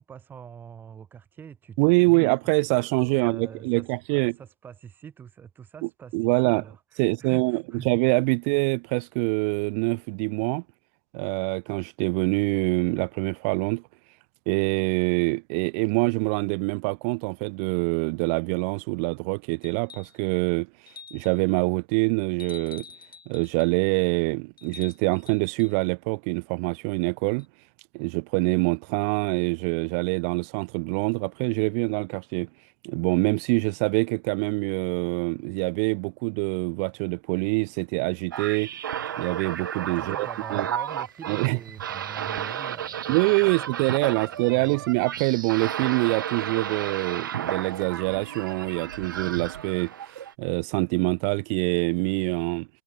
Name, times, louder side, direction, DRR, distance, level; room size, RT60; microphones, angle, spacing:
voice 1, 0.0-2.3 2.6-7.9 39.9-43.8 44.1-44.9, right 7 dB, 15° right, 7.4 m, -44 dB
voice 2, 1.8-4.3 6.1-6.6 7.0-10.6 11.1-13.8 14.5-20.7 21.1-22.8 23.3-27.5 27.9-32.5 32.8-38.7 39.2-40.7 41.3-41.6 43.1-49.9 50.4-52.7, right 35 dB, 40° right, 1.4 m, -25 dB
sound 1, 19.6-20.2 20.9-21.5 22.4-23.8 24.6-25.8 27.4-27.5, left 6 dB, 90° left, 6.7 m, -47 dB
sound 2, 38.3-50.3, right 9 dB, 70° right, 6.9 m, -33 dB
hypercardioid pair, 125°, 11 cm